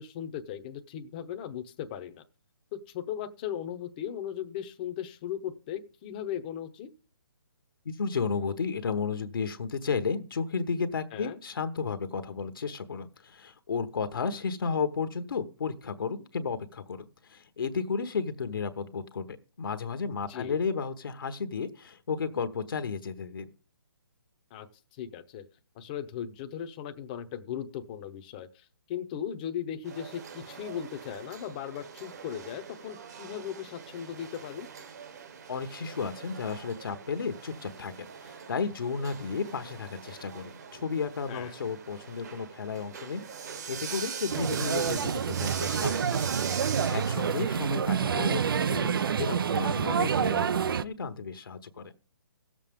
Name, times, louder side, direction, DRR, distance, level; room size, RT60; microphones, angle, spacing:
voice 1, 0.0-2.2 2.7-6.9 11.1-11.4 20.3-20.6 24.5-24.7 25.0-25.4 25.8-34.7 41.3-41.5, left 9 dB, 20° left, 7 dB, 0.8 m, -37 dB
voice 2, 7.8-19.3 19.6-23.5 35.5-51.9, left 5 dB, 65° left, 9 dB, 1.1 m, -33 dB
sound 1, 29.8-47.4, right 6 dB, 45° right, 1.4 m, -42 dB
sound 2, 44.3-50.8, right 7 dB, 65° right, 0.5 m, -28 dB
17.0 x 7.4 x 3.6 m, 0.39 s
hypercardioid pair, 165°, 12 cm